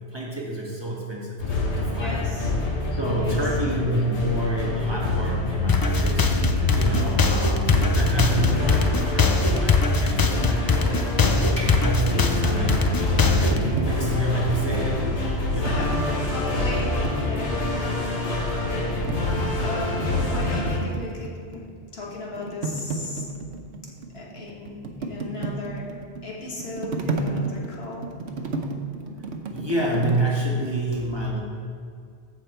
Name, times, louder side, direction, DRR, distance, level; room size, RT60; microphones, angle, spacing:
voice 1, 0.0-2.3 2.8-6.3 6.7-11.1 11.6-12.9 13.1-15.9 16.5-16.7 17.5-17.7 23.3-23.4 29.5-31.4, right 1 dB, 25° right, -4 dB, 1.6 m, -29 dB
sound 1, 1.4-20.8, left 2 dB, 85° left, 1.7 m, -26 dB
voice 2, 1.9-2.5 3.1-3.4 7.2-7.4 15.6-17.0 17.2-17.6 19.6-21.7 21.9-23.3 24.1-25.8 26.2-28.1, left 3 dB, 65° left, -3 dB, 2.0 m, -36 dB
sound 2, 5.7-13.6, left 3 dB, 35° left, 0.3 m, -21 dB
sound 3, 11.2-14.7 15.3-18.1 18.5-21.7 22.0-30.2, right 3 dB, 80° right, 1.1 m, -33 dB
15.0 x 5.1 x 4.4 m, 2.3 s
omnidirectional pair, 1.1 m